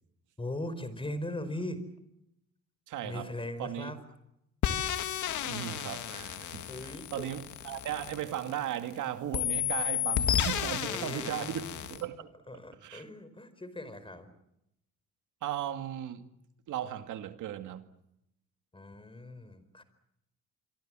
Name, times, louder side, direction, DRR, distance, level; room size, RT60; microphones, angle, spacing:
voice 1, 0.4-1.8 3.0-4.0 6.7-7.3 10.8-11.5 12.5-14.3 18.7-19.8, left 1 dB, 15° left, 4.7 m, -39 dB
voice 2, 2.9-3.3 3.6-3.9 5.4-12.3 12.8-13.0 15.4-16.2 16.7-17.9, right 11 dB, 80° right, 2.2 m, -37 dB
sound 1, 4.6-8.9 9.3-12.0, left 10 dB, 75° left, 2.0 m, -32 dB
27.0 x 24.0 x 7.6 m
cardioid pair, 90°, 30 cm